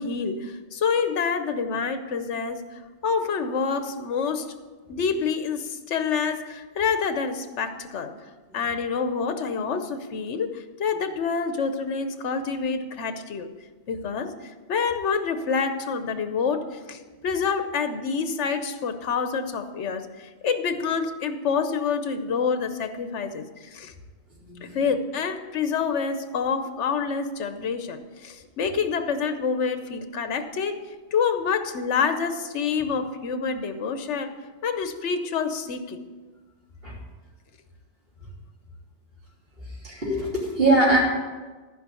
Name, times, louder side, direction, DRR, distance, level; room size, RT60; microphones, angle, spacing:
voice 1, 0.0-4.5 4.9-8.1 8.5-13.5 13.9-14.3 14.7-23.9 24.6-30.8 31.1-34.3 34.6-36.0, left 5 dB, 70° left, 9 dB, 1.1 m, -27 dB
voice 2, 24.4-24.8 36.8-36.9 39.8-41.0, right 2 dB, 50° right, -5 dB, 3.5 m, -22 dB
14.0 x 5.3 x 6.9 m, 1.3 s
omnidirectional pair, 1.2 m